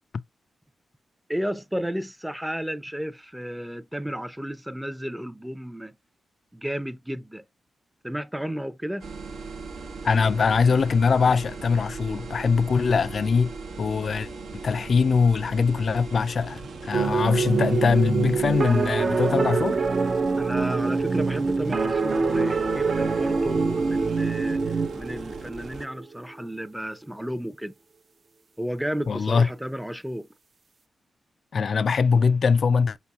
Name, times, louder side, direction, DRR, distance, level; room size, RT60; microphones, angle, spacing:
voice 1, 1.3-6.0 6.5-7.4 8.0-9.1 20.3-27.7 28.6-30.3, equal, 5° right, 0.5 m, -33 dB
sound 1, 9.0-25.9, right 3 dB, 80° right, 0.8 m, -39 dB
voice 2, 10.0-13.5 13.8-14.3 14.6-19.8 29.1-29.5 31.5-33.0, left 5 dB, 60° left, 0.3 m, -22 dB
sound 2, 16.9-26.2, right 4 dB, 50° right, 0.6 m, -25 dB
5.2 x 4.1 x 2.3 m
cardioid pair, 65°, 0 cm